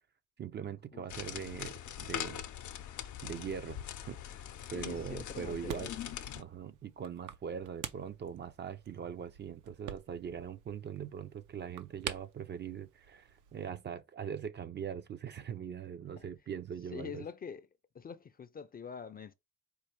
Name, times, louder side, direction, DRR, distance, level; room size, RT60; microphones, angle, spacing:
voice 1, 0.4-2.4 3.2-5.9 6.4-17.3, right 7 dB, 35° right, 0.4 m, -41 dB
sound 1, 1.1-6.4, left 10 dB, 75° left, 0.6 m, -42 dB
voice 2, 4.7-5.9 16.2-16.3 16.9-17.7 17.9-19.3, left 6 dB, 30° left, 0.4 m, -45 dB
sound 2, 5.0-13.7, right 10 dB, 80° right, 0.6 m, -48 dB
4.5 x 2.4 x 3.2 m
cardioid pair, 90°, 30 cm